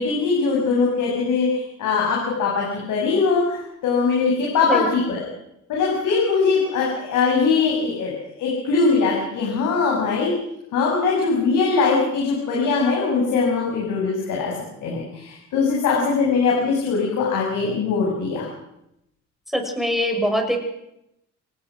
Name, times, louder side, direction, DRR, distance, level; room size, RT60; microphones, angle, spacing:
voice 1, 0.0-5.2 5.7-8.1 8.4-10.3 10.7-14.5 14.8-18.5, left 4 dB, 85° left, -2 dB, 7.2 m, -21 dB
voice 2, 4.5-4.9 19.5-20.6, equal, ahead, 4 dB, 6.5 m, -23 dB
26.5 x 18.5 x 6.4 m, 0.83 s
cardioid pair, 90°, 30 cm